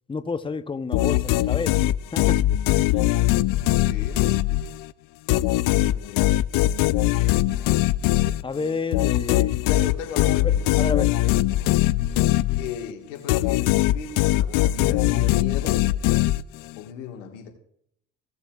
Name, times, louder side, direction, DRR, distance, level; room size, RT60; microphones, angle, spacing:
voice 1, 0.1-2.4 2.9-3.1 8.4-9.5 10.4-11.1, left 4 dB, 15° left, 0.6 m, -30 dB
sound 1, 0.9-4.9 5.3-12.9 13.3-16.8, left 16 dB, 65° left, 0.5 m, -21 dB
voice 2, 3.5-4.2 5.6-6.3 9.5-10.7 12.6-15.8 16.8-17.5, left 8 dB, 90° left, 1.7 m, -35 dB
17.0 x 7.0 x 2.4 m
hypercardioid pair, 65°, 36 cm